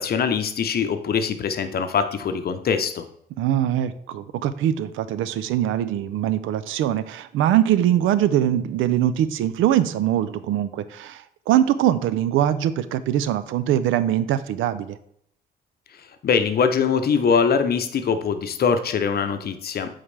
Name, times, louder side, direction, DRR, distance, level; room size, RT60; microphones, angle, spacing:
voice 1, 0.0-3.0 16.2-19.9, left 6 dB, 50° left, 9 dB, 0.7 m, -22 dB
voice 2, 3.4-15.0, right 11 dB, 85° right, 14 dB, 0.4 m, -22 dB
8.5 x 3.7 x 3.3 m, 0.69 s
cardioid pair, 90°, 20 cm